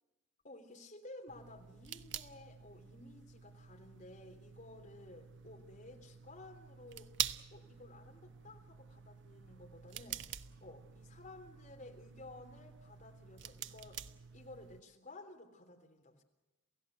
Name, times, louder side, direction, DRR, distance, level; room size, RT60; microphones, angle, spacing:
voice 1, 0.4-7.1 7.5-10.2 10.6-14.0 14.3-16.2, left 2 dB, 40° left, 3 dB, 3.4 m, -54 dB
sound 1, 1.3-14.8, right 10 dB, 65° right, 0.9 m, -47 dB
28.5 x 16.0 x 8.0 m, 1.1 s
head